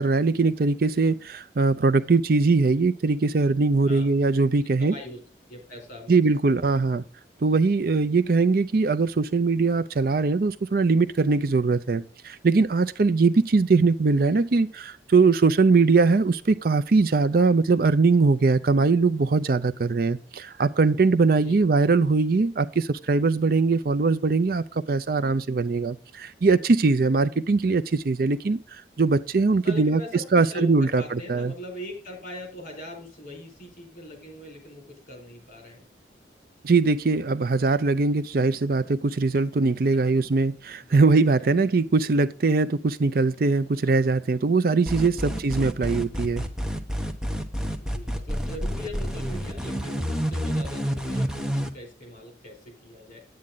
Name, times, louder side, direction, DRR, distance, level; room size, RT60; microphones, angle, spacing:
voice 1, 0.0-4.9 6.1-7.0 7.4-30.0 30.3-31.5 36.6-46.4, right 3 dB, 55° right, 0.5 m, -21 dB
voice 2, 3.9-4.2 4.8-5.2 5.5-6.2 6.5-6.6 21.3-21.6 29.6-35.8 39.9-40.1 40.8-41.0 41.4-41.7 45.1-45.3 47.8-53.2, equal, 45° left, 4.7 m, -41 dB
sound 1, 44.9-51.7, equal, 5° right, 0.9 m, -28 dB
9.5 x 8.7 x 3.9 m
head